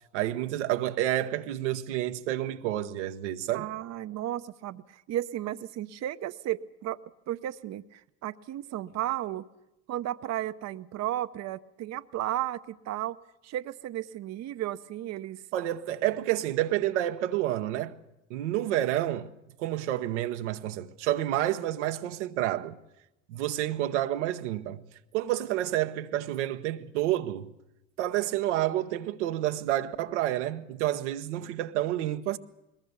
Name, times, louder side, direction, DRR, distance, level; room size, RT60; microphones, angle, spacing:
voice 1, 0.1-3.7 15.5-17.9 18.3-19.3 19.6-22.8 23.3-24.8 25.1-27.5 28.0-32.4, right 13 dB, 85° right, 0.9 m, -29 dB
voice 2, 3.5-7.0 7.3-9.5 9.9-13.2 13.4-15.4, right 13 dB, 50° right, 0.7 m, -34 dB
21.0 x 20.0 x 6.9 m
hypercardioid pair, 65°, 34 cm